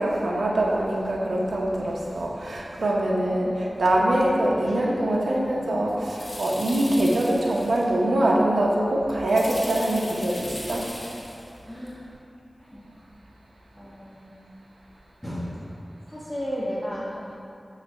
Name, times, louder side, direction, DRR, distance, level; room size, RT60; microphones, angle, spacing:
voice 1, 0.0-10.9, right 1 dB, 90° right, -2 dB, 0.7 m, -23 dB
voice 2, 3.1-3.5 5.5-5.7 6.8-7.1 11.6-12.1 12.6-12.8 13.7-14.3 15.2-15.5 16.1-17.1, equal, 5° left, -8 dB, 1.2 m, -34 dB
sound 1, 3.8-3.9 4.7-5.0 5.9-7.9 9.3-11.6 11.9-12.0, left 1 dB, 65° left, 1.5 m, -39 dB
7.5 x 3.3 x 5.6 m, 2.6 s
cardioid pair, 45°, 0 cm